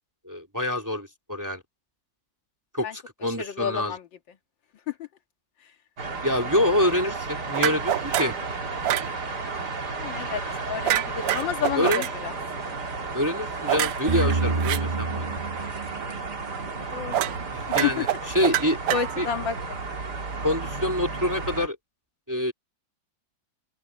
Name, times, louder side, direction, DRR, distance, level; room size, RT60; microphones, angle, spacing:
voice 1, 0.2-1.6 2.7-3.9 6.2-8.3 11.7-12.1 13.1-15.5 17.5-18.1 18.3-18.8 19.2-19.3 20.4-21.8 22.3-22.5, left 1 dB, 10° right, 2.9 m, -26 dB
voice 2, 3.2-4.1 4.9-5.1 5.6-5.7 9.9-12.3 16.7-17.3 17.7-18.2 18.9-19.8, left 8 dB, 65° left, 2.3 m, -31 dB
sound 1, 6.0-21.7, right 3 dB, 55° right, 3.2 m, -33 dB
sound 2, 7.5-8.4 8.8-9.1 10.8-12.1 13.7-14.8 17.1-17.4 17.7-19.4, right 12 dB, 75° right, 0.8 m, -26 dB
sound 3, 14.1-17.0, right 4 dB, 35° right, 0.8 m, -28 dB
open air
omnidirectional pair, 2.2 m